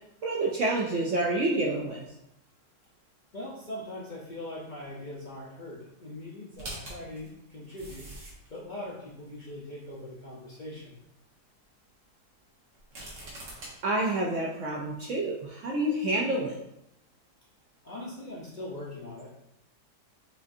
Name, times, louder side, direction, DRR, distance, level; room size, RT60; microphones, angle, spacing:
voice 1, 0.2-2.0 13.8-16.6, right 2 dB, 70° right, -1 dB, 0.7 m, -28 dB
voice 2, 3.3-8.1 8.5-11.0 17.8-19.4, left 1 dB, 55° left, -5 dB, 0.5 m, -41 dB
sound 1, 6.5-8.6 9.3-9.4 12.7-13.7, right 1 dB, 85° right, 1.9 m, -42 dB
6.6 x 2.5 x 2.6 m, 0.81 s
omnidirectional pair, 1.8 m